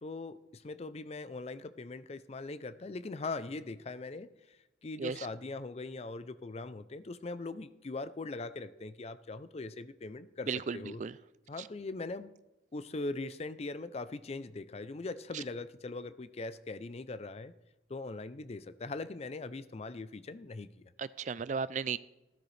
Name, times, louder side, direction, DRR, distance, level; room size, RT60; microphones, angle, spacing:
voice 1, 0.0-11.0 11.5-12.3 12.7-17.5 17.9-20.8, left 3 dB, 35° left, 13 dB, 0.4 m, -41 dB
voice 2, 10.5-11.1 21.0-22.0, right 5 dB, 40° right, 17 dB, 0.3 m, -35 dB
15.5 x 13.0 x 3.3 m, 1.0 s
head